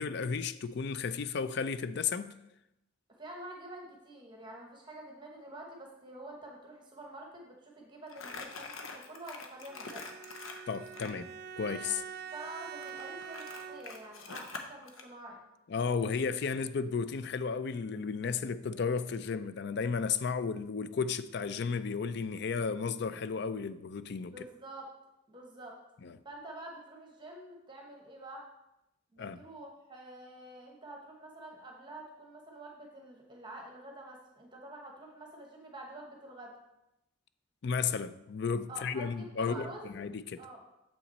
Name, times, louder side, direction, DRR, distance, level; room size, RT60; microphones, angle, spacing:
voice 1, 0.0-2.3 10.7-11.3 11.6-12.0 15.7-24.3 26.0-26.1 29.2-29.4 37.6-40.4, left 5 dB, 55° left, 0.4 m, -33 dB
voice 2, 3.1-10.1 12.3-15.4 24.3-24.9 25.3-25.8 26.2-28.4 29.1-36.5 38.7-39.9 40.4-40.6, right 1 dB, 25° right, 1.0 m, -47 dB
Crumpling crinkling, 8.1-11.2 12.8-15.0, left 4 dB, 85° left, 0.9 m, -45 dB
Bowed string instrument, 9.7-14.2, right 7 dB, 50° right, 0.3 m, -45 dB
7.1 x 5.8 x 4.1 m
head